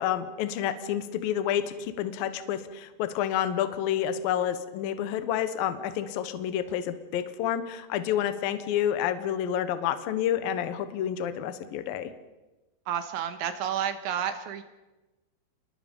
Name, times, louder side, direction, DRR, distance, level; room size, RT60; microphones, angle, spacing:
voice 1, 0.0-12.1, left 10 dB, 75° left, 10 dB, 2.2 m, -29 dB
voice 2, 12.9-14.6, right 9 dB, 75° right, 8 dB, 3.4 m, -30 dB
28.5 x 21.5 x 5.4 m, 1.1 s
omnidirectional pair, 5.7 m